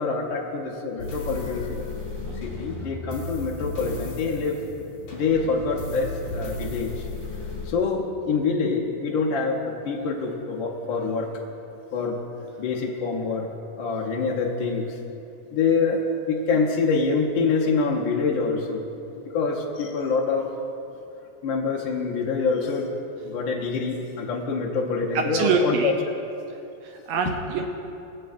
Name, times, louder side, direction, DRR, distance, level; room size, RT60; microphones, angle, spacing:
voice 1, 0.0-1.9 2.4-4.6 5.1-7.0 7.7-11.3 11.9-12.2 12.6-13.5 13.8-14.9 15.5-19.0 19.3-20.5 21.4-22.9 23.2-25.9 27.3-27.4, left 4 dB, 80° left, -2 dB, 1.0 m, -25 dB
sound 1, 1.0-7.7, left 2 dB, 55° left, 3.4 m, -35 dB
voice 2, 25.1-25.9 26.8-27.7, right 4 dB, 80° right, 4 dB, 1.5 m, -25 dB
19.0 x 7.8 x 2.5 m, 2.8 s
omnidirectional pair, 3.4 m